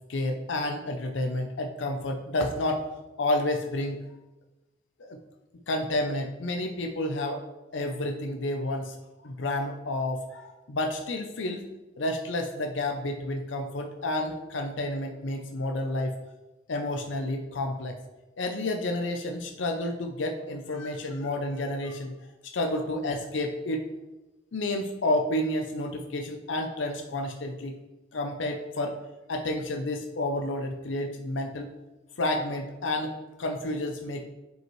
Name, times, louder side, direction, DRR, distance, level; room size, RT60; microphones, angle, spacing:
voice 1, 0.1-2.9 3.2-4.0 5.0-5.2 5.7-7.4 7.7-9.0 9.2-11.7 12.0-16.1 16.7-18.0 18.4-22.1 22.5-23.9 24.5-27.8 28.1-29.0 29.3-31.7 32.2-33.1 33.4-34.2, left 1 dB, 75° left, 4 dB, 0.6 m, -30 dB
7.7 x 5.2 x 3.1 m, 1.1 s
head